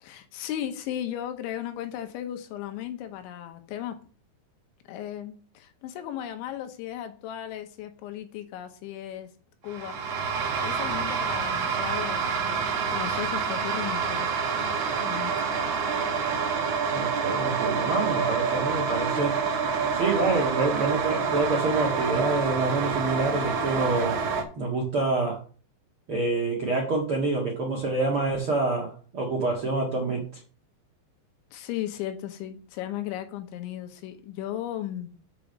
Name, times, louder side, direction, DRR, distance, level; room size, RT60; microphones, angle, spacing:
voice 1, 0.0-4.0 4.9-9.3 9.6-10.0 10.3-14.3 15.0-15.3 31.5-35.1, left 11 dB, 90° left, 7 dB, 3.4 m, -36 dB
sound 1, 9.7-24.4, right 5 dB, 80° right, 1.4 m, -27 dB
voice 2, 16.9-19.4 19.9-24.2 24.6-25.4 26.1-30.2, right 3 dB, 60° right, -1 dB, 1.4 m, -27 dB
7.6 x 5.2 x 6.6 m, 0.40 s
omnidirectional pair, 5.2 m